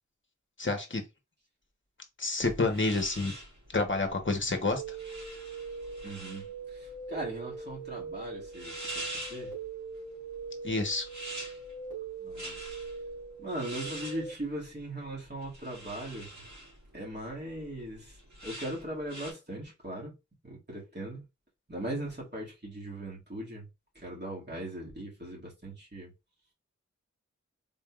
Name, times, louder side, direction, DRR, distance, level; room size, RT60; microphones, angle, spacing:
voice 1, 0.6-1.0 2.2-3.3 3.7-5.0 10.6-11.1, left 3 dB, 40° left, 1.0 m, -29 dB
sound 1, 2.4-19.3, right 1 dB, 60° right, 2.3 m, -45 dB
sound 2, 4.7-14.3, right 5 dB, 85° right, 2.2 m, -42 dB
voice 2, 6.0-9.6 12.2-12.6 13.4-16.4 16.9-20.1 20.4-21.2 21.7-23.6 23.9-26.1, right 1 dB, 35° right, 2.1 m, -39 dB
3.8 x 3.4 x 2.4 m
wide cardioid pair, 50°, 31 cm